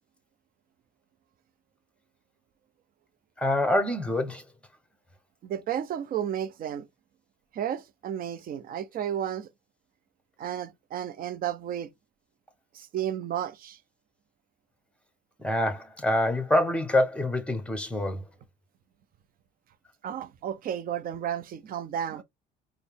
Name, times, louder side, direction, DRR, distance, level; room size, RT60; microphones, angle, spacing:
voice 1, 3.4-4.4 15.4-18.2, left 1 dB, 5° left, 0.9 m, -26 dB
voice 2, 5.4-6.9 7.5-9.5 10.4-11.9 12.7-13.8 20.0-22.2, right 10 dB, 50° right, 0.5 m, -32 dB
4.1 x 2.0 x 3.4 m
supercardioid pair, 90°, 20 cm